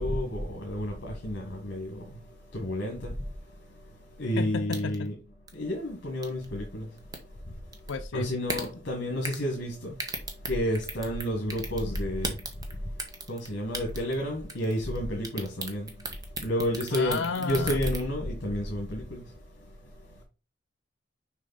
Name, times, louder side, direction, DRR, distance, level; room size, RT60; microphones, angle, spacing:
voice 1, 0.0-2.2 2.5-3.3 4.2-5.2 5.5-6.9 7.4-7.5 8.1-10.0 10.5-12.4 13.3-16.1 16.4-19.3, left 1 dB, 60° left, 1.5 m, -31 dB
voice 2, 4.4-5.1 7.9-8.3 16.9-17.8, left 4 dB, 80° left, 0.5 m, -32 dB
sound 1, 4.7-5.1 5.5-5.6 6.2-6.4 7.0-7.2 7.7-7.9 8.5-8.6 9.2-9.4 9.9-11.2 11.5-12.7 13.0-13.5 13.7-14.2 14.5-15.0 15.2-18.0, right 2 dB, 20° right, 1.1 m, -34 dB
6.4 x 5.0 x 4.1 m
head